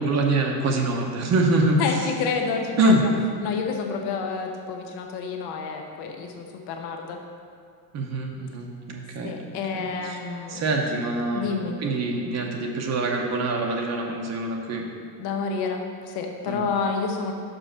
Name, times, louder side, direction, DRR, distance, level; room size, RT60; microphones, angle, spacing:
voice 1, 0.0-2.1 2.8-3.0 7.9-9.4 9.7-10.2 10.5-14.9 16.5-16.7, right 2 dB, 40° right, 1 dB, 0.8 m, -25 dB
voice 2, 1.8-3.0 3.4-7.2 9.2-10.6 11.3-11.7 15.2-17.3, left 5 dB, 65° left, 3 dB, 1.0 m, -29 dB
5.5 x 5.2 x 6.2 m, 2.2 s
cardioid pair, 135°, 42 cm